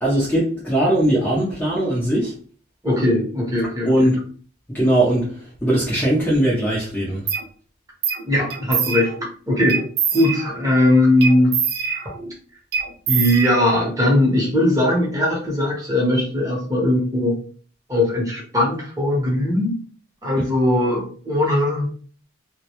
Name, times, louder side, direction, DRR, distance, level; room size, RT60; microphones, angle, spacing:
voice 1, 0.0-2.3 3.8-4.2 4.7-7.2 20.4-20.5, right 1 dB, 10° left, -7 dB, 0.5 m, -20 dB
voice 2, 2.8-4.1 8.3-9.2 9.5-11.6 13.1-17.4 17.9-19.8 20.2-21.9, left 1 dB, 15° right, -3 dB, 0.8 m, -19 dB
sound 1, 7.3-7.4 8.0-8.2 8.5-9.3 9.7-10.7 11.2-12.4 12.7-14.0, right 6 dB, 50° right, 0.4 m, -24 dB
2.1 x 2.1 x 2.8 m, 0.42 s
head